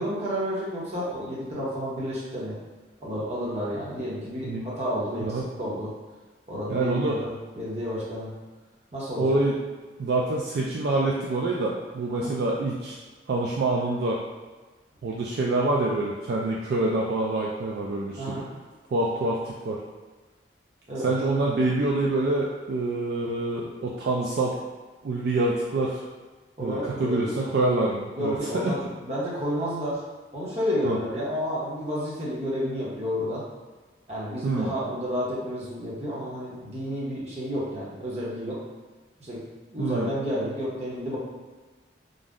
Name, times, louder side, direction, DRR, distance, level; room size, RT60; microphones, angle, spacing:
voice 1, 0.0-2.6 3.0-5.3 5.6-5.9 6.5-8.3 8.9-9.4 12.1-12.3 18.2-18.5 20.9-21.1 26.6-27.3 28.2-30.0 30.3-33.4 34.1-38.6 39.2-39.4 39.7-41.2, equal, 35° right, -8 dB, 0.8 m, -31 dB
voice 2, 6.7-7.2 9.2-9.6 10.0-13.0 13.3-14.2 15.0-18.4 18.9-19.8 21.0-24.6 25.0-26.0 26.6-28.7 30.8-31.0 34.4-34.7 39.8-40.1, right 2 dB, 60° right, -4 dB, 0.3 m, -26 dB
2.6 x 2.0 x 3.5 m, 1.3 s
head